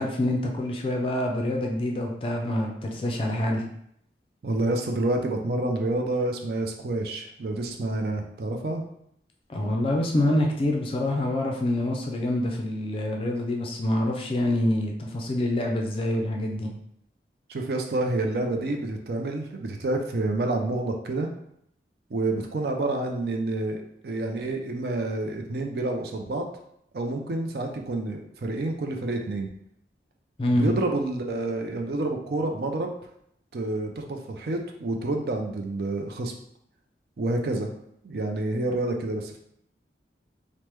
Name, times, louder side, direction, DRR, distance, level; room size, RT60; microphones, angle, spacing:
voice 1, 0.0-3.6 9.5-16.7 30.4-30.7, left 1 dB, 30° left, 1 dB, 0.4 m, -26 dB
voice 2, 4.4-8.8 17.5-21.3 22.1-26.4 26.9-29.5 30.5-32.9 33.5-36.3 37.2-37.7 38.0-39.4, right 2 dB, 55° right, 3 dB, 0.4 m, -28 dB
3.3 x 2.1 x 3.0 m, 0.73 s
head